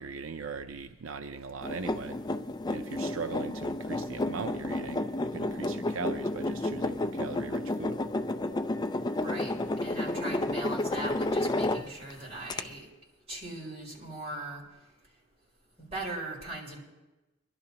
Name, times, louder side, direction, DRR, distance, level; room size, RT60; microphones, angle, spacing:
voice 1, 0.0-2.2 2.7-8.0, right 5 dB, 85° right, 7 dB, 0.5 m, -39 dB
sound 1, 1.6-12.1 12.5-12.6, left 2 dB, 20° left, 0.4 m, -31 dB
voice 2, 9.2-9.5 9.8-12.8 13.3-14.6 15.8-16.8, right 1 dB, 35° right, -5 dB, 5.2 m, -39 dB
24.0 x 12.0 x 2.9 m, 1.0 s
head